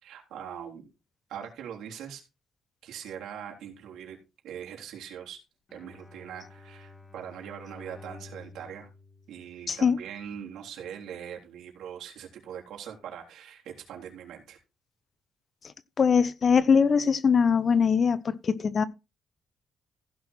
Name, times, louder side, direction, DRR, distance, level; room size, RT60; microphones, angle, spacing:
voice 1, 0.0-0.9 1.3-2.2 2.8-4.2 4.4-5.4 5.7-8.9 9.3-14.6, right 8 dB, 80° right, 3.6 m, -42 dB
Bowed string instrument, 5.7-10.1, left 3 dB, 30° left, 3.3 m, -50 dB
voice 2, 16.0-18.8, left 6 dB, 45° left, 0.8 m, -22 dB
15.5 x 6.2 x 4.4 m
cardioid pair, 90°, 0 cm